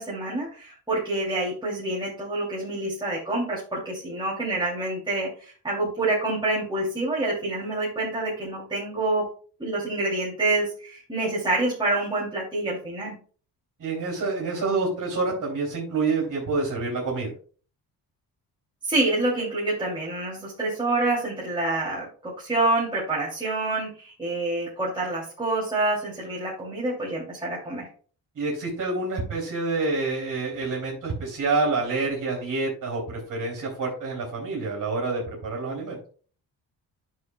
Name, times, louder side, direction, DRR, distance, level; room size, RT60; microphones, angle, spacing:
voice 1, 0.0-9.3 9.6-13.1 18.8-27.9, right 2 dB, 10° right, -7 dB, 2.7 m, -27 dB
voice 2, 13.8-17.3 28.3-36.0, right 3 dB, 50° right, -1 dB, 3.1 m, -27 dB
9.5 x 6.4 x 2.3 m, 0.41 s
cardioid pair, 100°, 41 cm